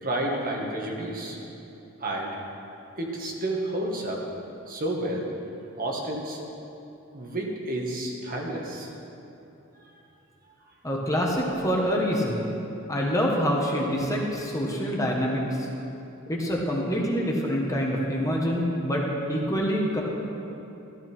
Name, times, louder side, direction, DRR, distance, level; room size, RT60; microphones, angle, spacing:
voice 1, 0.0-1.4 2.0-2.4 3.0-4.2 4.7-5.3 5.8-6.4 7.1-8.9, right 1 dB, 40° right, -1 dB, 1.7 m, -30 dB
voice 2, 10.8-12.5 12.9-15.7 16.3-20.0, equal, 15° left, -2 dB, 1.5 m, -26 dB
14.5 x 13.5 x 4.6 m, 2.9 s
head